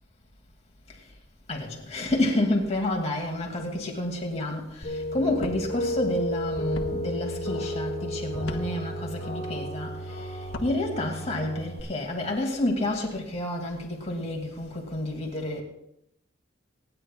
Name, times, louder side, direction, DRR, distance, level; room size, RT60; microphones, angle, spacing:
voice 1, 1.5-15.6, left 1 dB, 30° left, 2.3 m, -29 dB
sound 1, 4.8-11.8, equal, 55° left, 2.2 m, -33 dB
sound 2, 5.4-5.6 6.7-6.9 8.4-8.6 10.4-10.7, left 1 dB, 70° left, 1.1 m, -36 dB
26.0 x 10.0 x 2.4 m
head